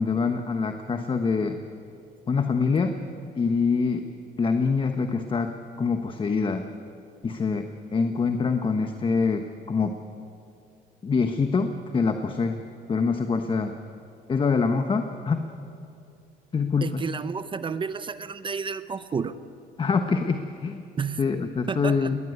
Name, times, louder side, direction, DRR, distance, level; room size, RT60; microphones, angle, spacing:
voice 1, 0.0-1.6 2.3-3.0 3.4-4.1 4.4-6.7 7.2-10.0 11.0-12.6 12.9-13.7 14.3-15.5 16.5-17.0 19.8-20.8 21.2-22.2, left 5 dB, 30° left, 7 dB, 1.2 m, -25 dB
voice 2, 16.8-19.4 21.0-21.3 21.7-22.1, right 5 dB, 30° right, 13 dB, 0.7 m, -31 dB
20.5 x 19.5 x 9.7 m, 2.6 s
cardioid pair, 110°, 17 cm